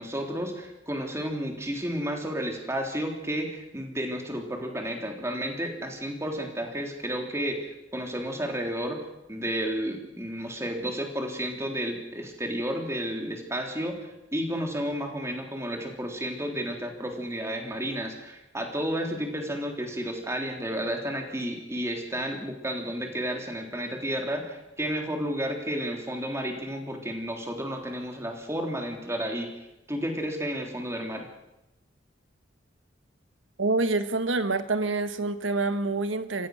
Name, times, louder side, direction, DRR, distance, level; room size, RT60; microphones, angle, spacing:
voice 1, 0.0-9.0 9.3-29.5 29.9-31.3, equal, 15° right, 3 dB, 3.4 m, -32 dB
voice 2, 33.6-36.5, right 3 dB, 85° right, 11 dB, 1.4 m, -27 dB
26.5 x 15.5 x 6.4 m, 0.91 s
head